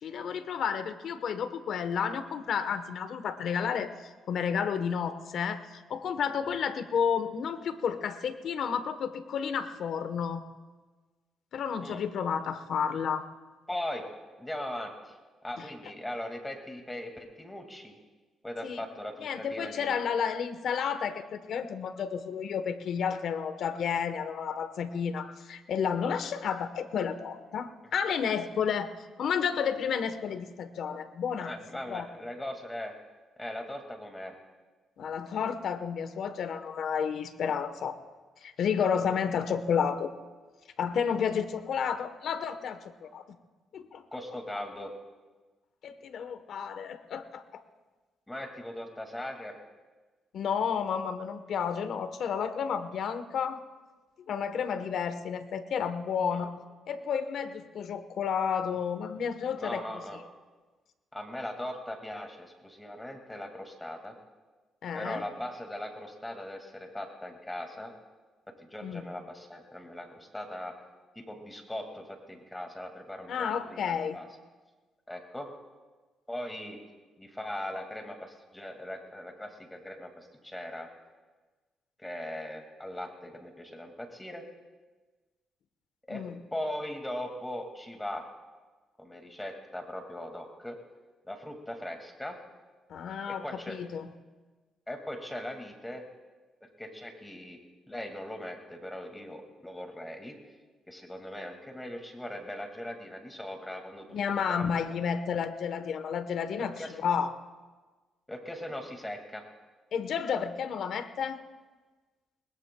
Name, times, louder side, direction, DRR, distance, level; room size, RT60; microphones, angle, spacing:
voice 1, 0.0-10.4 11.5-13.2 15.6-15.7 18.6-18.8 19.2-28.9 29.2-31.5 31.9-32.1 35.0-38.0 38.4-40.1 40.8-43.2 43.7-44.0 45.8-47.6 50.3-53.6 54.3-56.5 56.9-59.8 64.8-65.2 68.8-69.0 73.3-74.2 86.1-86.4 92.9-94.1 104.1-106.7 107.0-107.3 109.9-111.4, left 7 dB, 65° left, 10 dB, 1.0 m, -31 dB
voice 2, 13.7-14.1 14.4-15.2 15.4-18.0 18.4-20.0 31.4-32.9 33.4-34.4 44.1-44.9 48.3-49.6 56.3-56.5 59.6-60.2 61.1-64.2 64.9-67.9 68.6-70.7 71.2-74.3 75.1-75.5 76.3-76.8 77.2-80.9 82.0-84.4 86.1-86.3 86.5-88.3 89.0-90.8 91.2-92.4 93.3-93.8 94.9-96.0 96.6-97.6 97.9-100.4 100.9-104.2 104.5-104.6 106.6-107.0 108.3-109.4, left 1 dB, 10° left, 3 dB, 2.0 m, -39 dB
21.0 x 20.5 x 2.3 m, 1.3 s
cardioid pair, 90°, 0 cm